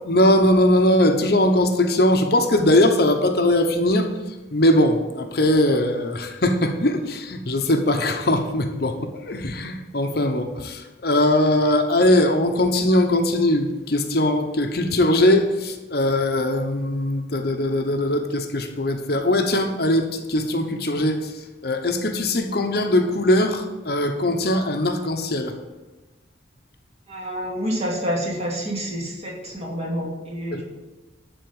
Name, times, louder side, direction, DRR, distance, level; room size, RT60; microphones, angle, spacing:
voice 1, 0.1-4.1 4.5-9.0 9.2-21.3 21.6-25.5 30.5-30.6, left 1 dB, 55° left, 6 dB, 1.0 m, -20 dB
voice 2, 27.1-30.6, equal, 35° right, -2 dB, 2.6 m, -28 dB
11.5 x 4.4 x 8.1 m, 1.2 s
head